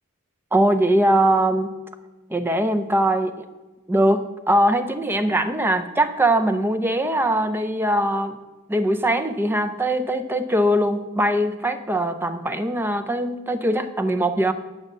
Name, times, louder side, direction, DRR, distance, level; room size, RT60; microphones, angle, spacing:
voice 1, 0.5-1.7 2.3-3.4 3.9-8.4 8.7-14.5, right 1 dB, 10° right, 9 dB, 0.6 m, -21 dB
9.8 x 6.2 x 6.4 m, 1.2 s
head